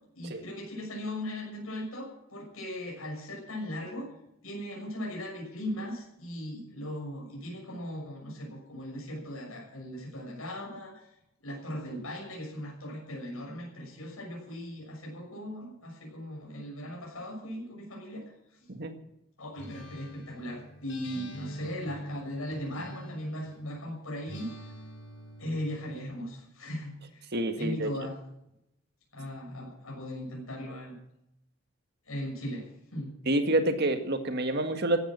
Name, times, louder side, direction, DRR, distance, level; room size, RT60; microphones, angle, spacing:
voice 1, 0.1-4.1 4.4-11.0 11.4-18.3 18.6-18.7 19.4-24.5 25.4-27.2 27.6-28.2 29.1-31.0 32.1-32.7 32.9-33.1, left 1 dB, 85° left, -2 dB, 6.5 m, -38 dB
Acoustic guitar, 19.6-23.7 24.3-25.8, equal, 60° left, 7.5 m, -44 dB
voice 2, 27.3-27.9 33.3-35.0, right 1 dB, 50° right, 8 dB, 1.9 m, -27 dB
15.0 x 11.5 x 7.5 m, 0.81 s
head